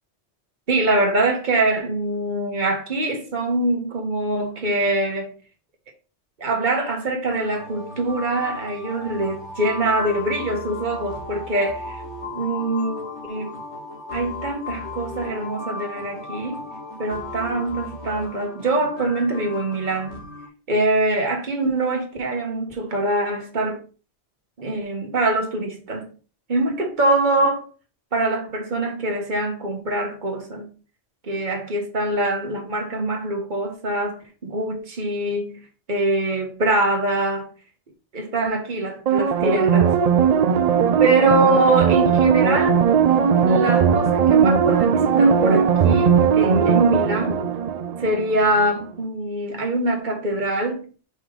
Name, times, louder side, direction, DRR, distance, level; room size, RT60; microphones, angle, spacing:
voice 1, 0.7-5.3 6.4-12.0 12.3-13.5 14.1-16.6 17.0-20.2 20.7-23.8 24.6-26.1 26.5-27.7 28.1-30.7 31.2-35.6 35.9-37.5 38.1-39.9 41.0-42.8 43.4-47.4 48.0-50.9, right 2 dB, 40° right, 1.5 m, -23 dB
sound 1, 7.3-20.5, left 3 dB, 75° left, 1.6 m, -35 dB
sound 2, 39.1-48.4 48.8-48.9, right 7 dB, 60° right, 0.4 m, -18 dB
5.3 x 3.8 x 5.0 m
omnidirectional pair, 1.2 m